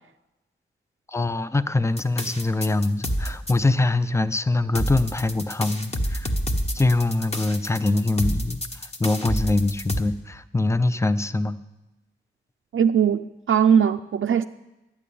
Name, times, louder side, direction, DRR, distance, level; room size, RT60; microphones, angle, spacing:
voice 1, 1.1-6.3 6.7-11.6, left 2 dB, 15° left, 0.5 m, -23 dB
sound 1, 2.0-3.5 4.7-10.0, equal, 30° left, 1.2 m, -28 dB
voice 2, 12.7-14.4, right 7 dB, 80° right, 0.4 m, -20 dB
12.0 x 10.0 x 8.5 m
wide cardioid pair, 120°, 20 cm